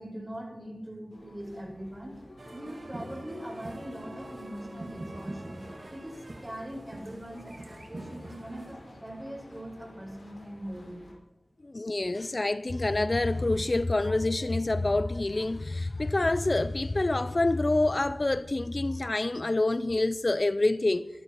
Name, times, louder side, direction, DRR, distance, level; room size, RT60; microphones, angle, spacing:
voice 1, 0.0-2.2 2.5-11.1, right 1 dB, 25° right, 4.9 m, -41 dB
sound 1, 1.1-11.1, left 2 dB, 70° left, 4.8 m, -51 dB
sound 2, 2.4-8.7, right 2 dB, 60° right, 1.8 m, -44 dB
voice 2, 11.6-21.1, left 2 dB, 45° left, 0.4 m, -27 dB
25.0 x 12.5 x 3.0 m
wide cardioid pair, 65°, 0 cm